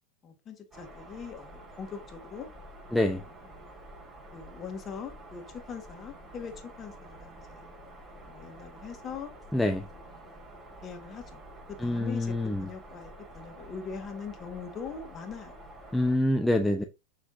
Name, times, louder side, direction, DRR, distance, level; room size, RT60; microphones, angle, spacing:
voice 1, 0.2-2.5 2.9-3.7 4.3-7.7 8.2-9.3 9.9-10.3 10.8-15.6, left 6 dB, 30° left, 2.3 m, -42 dB
sound 1, 0.7-16.2, right 1 dB, 25° right, 5.0 m, -49 dB
voice 2, 2.9-3.2 9.5-9.9 11.8-12.7 15.9-16.8, left 1 dB, 5° left, 0.8 m, -26 dB
7.3 x 6.4 x 2.7 m
hypercardioid pair, 90°, 0 cm